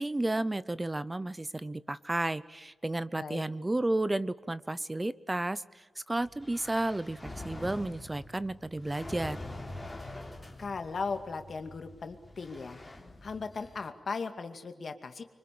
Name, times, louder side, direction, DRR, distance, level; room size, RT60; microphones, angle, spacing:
voice 1, 0.0-5.6 6.0-9.4, right 2 dB, 15° right, 16 dB, 0.8 m, -32 dB
sound 1, 6.2-13.9, left 1 dB, 10° left, 3.4 m, -45 dB
voice 2, 10.6-12.8 13.2-15.2, left 4 dB, 45° left, 7 dB, 2.3 m, -37 dB
26.0 x 24.5 x 8.6 m, 1.2 s
wide cardioid pair, 165°, 0 cm